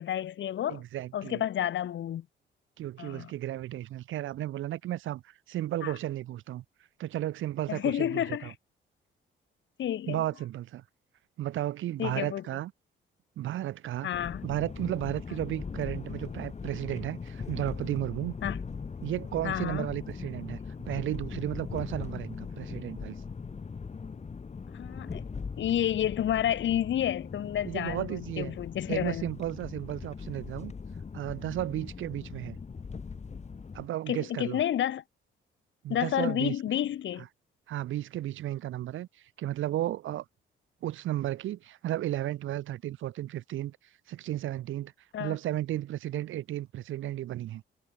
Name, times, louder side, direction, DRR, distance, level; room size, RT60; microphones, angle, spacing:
voice 1, 0.0-0.8 1.1-2.3 3.0-3.3 5.8-5.9 7.7-8.5 9.8-10.2 12.0-12.4 14.0-14.4 18.4-18.6 19.4-19.9 24.7-25.3 25.6-29.2 34.1-35.0 35.9-37.3 45.1-45.4, left 11 dB, 70° left, 7.2 m, -30 dB
voice 2, 0.7-1.4 2.8-6.6 7.0-8.5 10.1-10.8 11.4-12.7 13.4-14.1 14.4-18.4 19.0-20.6 20.8-23.2 27.6-28.6 28.9-30.7 31.1-32.6 33.7-34.6 35.8-36.5 37.7-39.1 39.4-40.2 40.8-43.8 44.1-44.9 45.2-47.6, right 13 dB, 80° right, 3.2 m, -34 dB
sound 1, 14.1-33.9, left 5 dB, 35° left, 3.7 m, -40 dB
cardioid pair, 90°, 20 cm